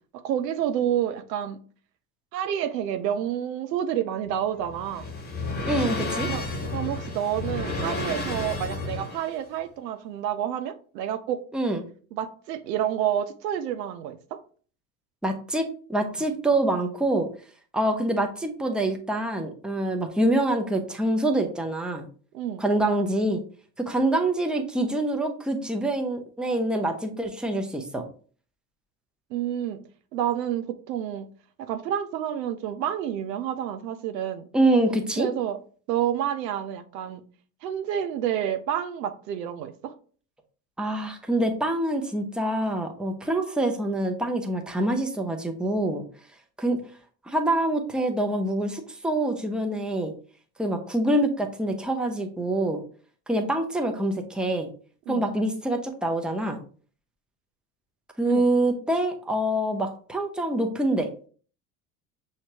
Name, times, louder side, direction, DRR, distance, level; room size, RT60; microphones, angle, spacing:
voice 1, 0.1-1.6 2.3-5.0 6.3-6.4 6.7-11.4 12.1-14.4 22.3-22.6 29.3-29.8 30.1-31.3 31.6-34.5 35.2-35.6 35.9-37.2 37.6-39.9 55.1-55.3 58.3-58.4, right 10 dB, 80° right, 8 dB, 0.7 m, -29 dB
sound 1, 4.3-9.4, left 2 dB, 20° left, 1.2 m, -31 dB
voice 2, 5.7-6.3 11.5-11.8 15.2-17.3 17.7-22.1 22.6-23.4 23.8-28.0 34.5-35.3 40.8-46.0 46.6-46.8 47.3-50.1 50.6-52.8 53.3-54.7 55.1-56.6 58.2-61.1, right 1 dB, ahead, 3 dB, 0.7 m, -25 dB
6.3 x 2.9 x 2.8 m, 0.42 s
hypercardioid pair, 65°, 50 cm